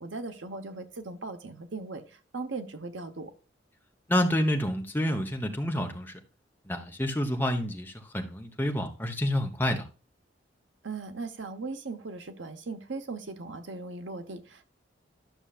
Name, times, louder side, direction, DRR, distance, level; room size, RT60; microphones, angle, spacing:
voice 1, 0.0-2.0 2.3-3.3 10.8-14.7, right 3 dB, 90° right, 1.0 m, -38 dB
voice 2, 4.1-6.1 6.7-9.8, equal, 10° left, 1.1 m, -28 dB
12.0 x 6.4 x 2.4 m
head